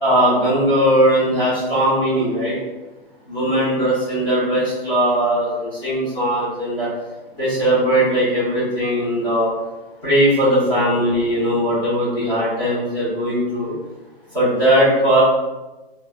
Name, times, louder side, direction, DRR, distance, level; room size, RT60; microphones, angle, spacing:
voice 1, 0.0-2.5 3.3-6.9 7.3-9.5 10.0-13.8 14.3-15.2, equal, 20° left, -11 dB, 0.7 m, -19 dB
3.1 x 2.0 x 2.3 m, 1.1 s
hypercardioid pair, 175°, 31 cm